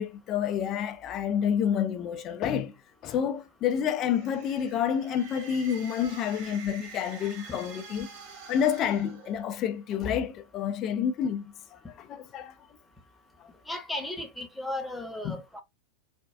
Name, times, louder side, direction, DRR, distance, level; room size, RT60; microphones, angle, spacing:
voice 1, 0.0-2.8 3.0-8.1 8.5-12.5 13.4-13.5 15.2-15.4, left 8 dB, 35° left, 0.5 m, -29 dB
sound 1, 3.8-9.9, right 5 dB, 40° right, 1.2 m, -47 dB
voice 2, 13.7-15.6, left 1 dB, 5° left, 0.9 m, -35 dB
4.3 x 2.4 x 2.3 m
figure-of-eight pair, 90°, 0 cm